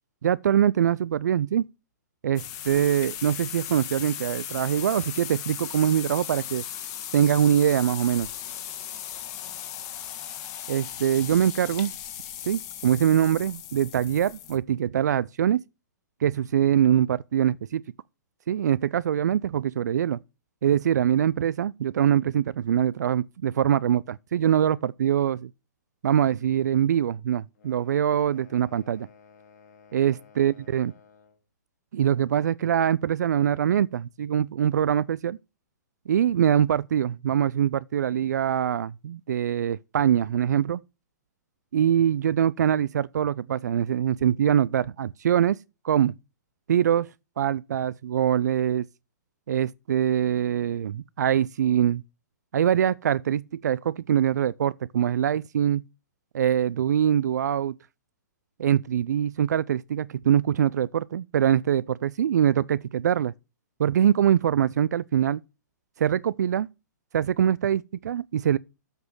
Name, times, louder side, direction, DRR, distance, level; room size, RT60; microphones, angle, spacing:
voice 1, 0.2-1.7 2.2-6.6 7.1-8.3 10.7-11.9 12.5-15.6 16.2-17.8 18.5-20.2 20.6-25.5 26.0-29.1 29.9-30.9 31.9-35.4 36.1-40.8 41.7-45.6 45.8-46.1 46.7-47.1 47.4-48.8 49.5-52.0 52.5-55.8 56.3-57.7 58.6-63.3 63.8-65.4 66.0-66.7 67.1-68.6, right 9 dB, 70° right, 0.4 m, -23 dB
sound 1, 2.4-14.6, left 10 dB, 35° left, 1.9 m, -37 dB
sound 2, 27.5-31.4, left 6 dB, 65° left, 3.2 m, -55 dB
8.1 x 6.1 x 6.6 m
hypercardioid pair, 130°, 10 cm